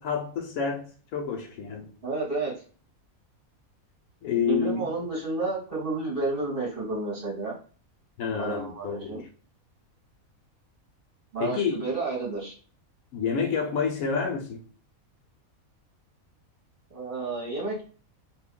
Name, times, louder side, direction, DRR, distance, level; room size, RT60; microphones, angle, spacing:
voice 1, 0.0-1.9 4.2-4.9 8.2-9.3 11.4-11.9 13.1-14.6, left 6 dB, 80° left, 1.2 m, -29 dB
voice 2, 2.0-2.5 4.5-7.6 8.4-9.2 11.3-12.5 16.9-17.8, right 3 dB, 40° right, 1.3 m, -31 dB
3.0 x 2.6 x 3.6 m
omnidirectional pair, 1.5 m